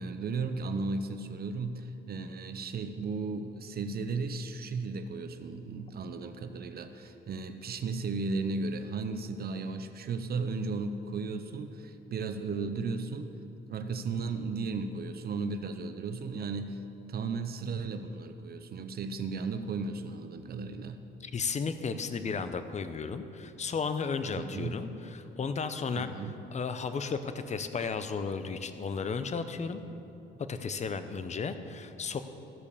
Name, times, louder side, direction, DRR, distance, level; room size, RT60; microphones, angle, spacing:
voice 1, 0.0-13.3 13.7-16.8 17.1-21.0 24.4-24.8 25.9-26.4, right 4 dB, 50° right, 9 dB, 0.6 m, -35 dB
voice 2, 21.2-26.1 26.5-29.8 30.4-32.2, left 5 dB, 35° left, 10 dB, 0.7 m, -34 dB
13.5 x 5.3 x 6.8 m, 2.9 s
cardioid pair, 90°, 20 cm